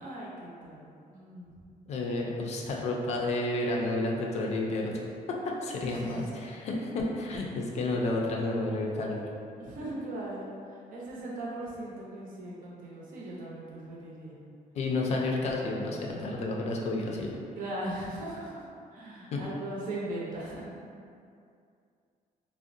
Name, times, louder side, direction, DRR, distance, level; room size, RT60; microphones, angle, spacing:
voice 1, 0.0-1.5 5.9-6.3 9.6-14.4 17.6-18.6 18.9-20.7, right 1 dB, 65° right, -5 dB, 0.7 m, -39 dB
voice 2, 1.9-5.0 5.3-9.3 14.7-17.4 19.3-19.4, left 2 dB, 50° left, -1 dB, 0.4 m, -31 dB
3.5 x 2.0 x 2.5 m, 2.4 s
cardioid pair, 175°, 15 cm